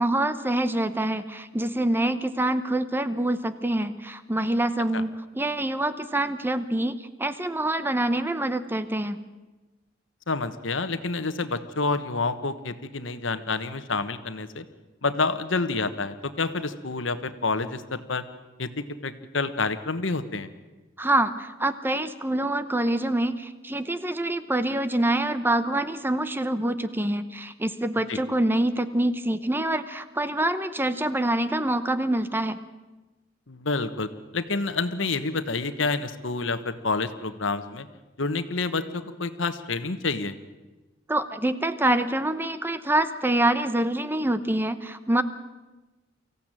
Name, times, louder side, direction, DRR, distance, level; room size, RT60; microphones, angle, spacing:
voice 1, 0.0-9.2 21.0-32.6 41.1-45.2, right 1 dB, 10° right, 12 dB, 0.9 m, -26 dB
voice 2, 10.3-14.6 15.0-18.2 18.6-20.5 28.1-28.2 33.5-37.9 38.2-40.3, left 3 dB, 75° left, 11 dB, 1.3 m, -28 dB
24.0 x 15.5 x 9.0 m, 1.2 s
head